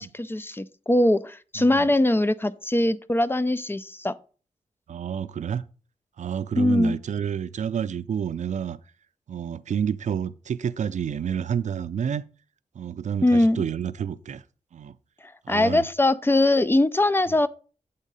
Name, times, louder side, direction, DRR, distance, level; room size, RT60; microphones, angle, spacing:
voice 1, 0.0-4.1 6.6-7.0 13.2-13.6 15.2-17.5, left 1 dB, 20° left, 0.3 m, -22 dB
voice 2, 1.6-1.9 4.9-5.6 6.2-8.8 9.3-12.2 12.7-14.4 14.7-14.9 15.4-15.8, right 8 dB, 75° right, 0.4 m, -29 dB
8.1 x 3.7 x 5.4 m
wide cardioid pair, 115°, 13 cm